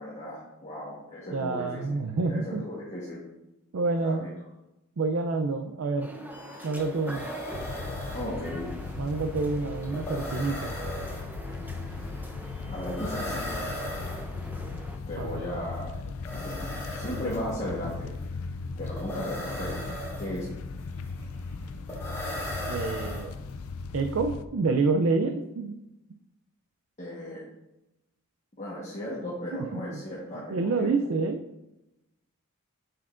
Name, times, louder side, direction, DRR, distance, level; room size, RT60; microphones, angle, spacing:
voice 1, 0.0-1.8 2.3-3.2 4.0-4.3 8.1-8.7 12.7-13.7 15.1-15.9 16.4-16.7 16.9-18.1 18.8-19.8 20.2-20.5 27.0-27.4 28.6-30.9, equal, 30° left, -6 dB, 1.2 m, -36 dB
voice 2, 1.3-2.6 3.7-4.3 5.0-6.1 6.6-7.3 9.0-10.7 15.2-15.4 22.7-23.3 23.9-25.7 29.5-30.0 30.5-31.4, right 3 dB, 60° right, 6 dB, 0.4 m, -28 dB
sound 1, 6.0-15.0, equal, 10° right, 0.5 m, -44 dB
sound 2, 6.3-6.4 6.6-23.7, equal, 15° left, 2.5 m, -39 dB
sound 3, 7.5-24.4, left 4 dB, 75° left, 0.4 m, -37 dB
7.1 x 6.8 x 2.5 m, 0.96 s
head